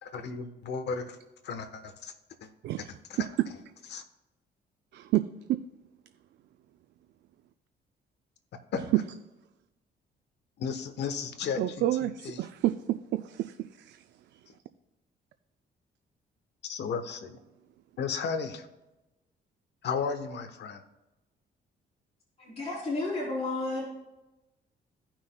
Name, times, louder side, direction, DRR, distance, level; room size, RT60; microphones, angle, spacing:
voice 1, 0.0-1.2 1.4-2.1 2.4-2.5 2.8-3.3 3.9-4.0 8.7-8.9 10.6-12.5 16.6-17.4 18.0-18.7 19.8-20.8, left 5 dB, 70° left, 8 dB, 1.1 m, -34 dB
voice 2, 11.6-13.5 13.9-14.0, right 14 dB, 75° right, 10 dB, 0.4 m, -28 dB
voice 3, 22.4-23.8, left 2 dB, 35° left, -6 dB, 3.3 m, -32 dB
16.5 x 6.0 x 2.2 m, 1.0 s
cardioid pair, 100°, 18 cm